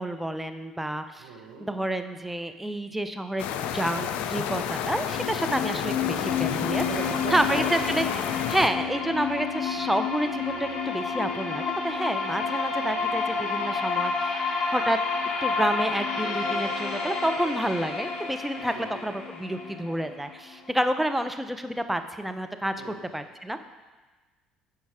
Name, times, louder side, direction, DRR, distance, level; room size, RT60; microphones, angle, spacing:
voice 1, 0.0-1.3 1.6-6.8 7.3-8.0 8.3-15.0 15.4-18.7 19.0-22.7 23.1-23.6, right 1 dB, 5° right, 8 dB, 0.6 m, -29 dB
voice 2, 1.2-1.7 6.8-8.5 18.6-19.0 22.8-23.2, right 7 dB, 70° right, 1 dB, 1.1 m, -40 dB
sound 1, 3.4-8.7, left 9 dB, 65° left, 0.4 m, -31 dB
sound 2, 4.8-20.7, left 5 dB, 45° left, 2.1 m, -30 dB
9.3 x 5.9 x 3.6 m, 1.3 s
hypercardioid pair, 55°, 2 cm